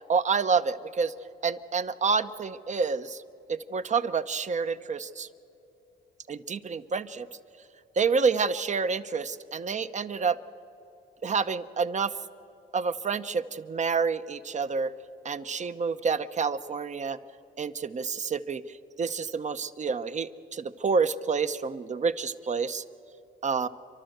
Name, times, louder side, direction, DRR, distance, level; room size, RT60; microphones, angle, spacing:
voice 1, 0.1-1.1 1.4-3.2 3.5-5.3 6.3-7.3 8.0-10.4 11.2-12.1 12.7-14.9 15.2-17.2 17.6-18.6 19.0-22.8 23.4-23.7, right 5 dB, 35° right, 12 dB, 0.8 m, -28 dB
28.5 x 12.0 x 8.0 m, 3.0 s
cardioid pair, 90°, 20 cm